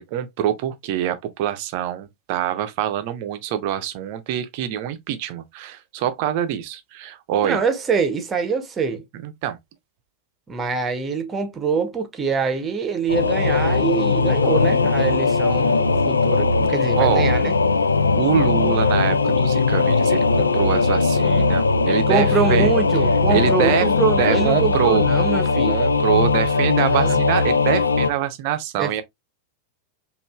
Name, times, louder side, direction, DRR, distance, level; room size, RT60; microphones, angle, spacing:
voice 1, 0.0-7.6 9.2-9.6 17.0-17.3 18.2-22.7 23.3-23.9 24.2-25.0 25.7-29.0, right 10 dB, 45° right, 0.6 m, -25 dB
voice 2, 7.4-9.0 10.5-17.5 22.1-25.8 26.9-27.2 28.8-28.9, right 5 dB, 20° right, 0.9 m, -24 dB
Singing / Musical instrument, 13.1-28.1, left 3 dB, 75° left, 0.3 m, -19 dB
5.2 x 2.5 x 2.3 m
figure-of-eight pair, 90°, 0 cm